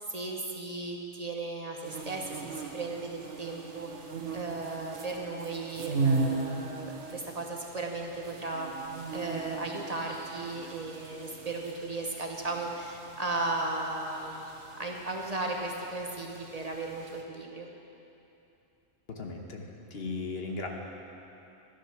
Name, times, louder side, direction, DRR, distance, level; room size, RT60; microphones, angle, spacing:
voice 1, 0.1-3.9 4.3-8.7 9.1-14.5 14.8-17.7, right 2 dB, 35° right, 0 dB, 1.1 m, -36 dB
sound 1, 1.8-17.2, right 4 dB, 90° right, 1.4 m, -38 dB
voice 2, 19.1-20.7, left 3 dB, 60° left, 1 dB, 1.3 m, -37 dB
13.0 x 10.0 x 5.9 m, 2.9 s
omnidirectional pair, 1.2 m